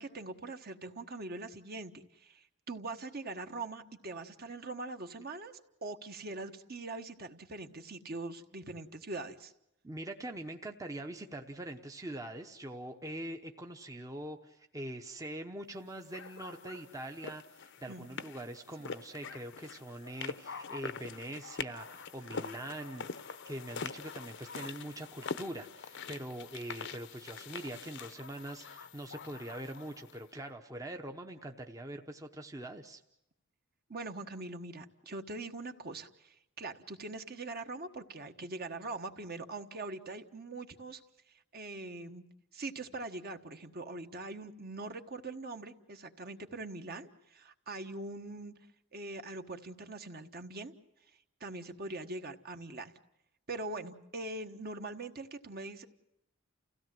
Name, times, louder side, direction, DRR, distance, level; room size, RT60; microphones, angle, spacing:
voice 1, 0.0-9.5 17.9-18.1 33.9-41.0 41.5-42.2 42.5-48.5 48.9-50.7 51.4-52.9 53.5-55.9, right 2 dB, 45° right, 6 dB, 1.4 m, -42 dB
voice 2, 9.8-33.0, right 1 dB, 15° right, 4 dB, 0.9 m, -43 dB
sound 1, 16.1-30.2, left 5 dB, 55° left, 0.8 m, -44 dB
29.5 x 16.5 x 7.7 m, 0.86 s
head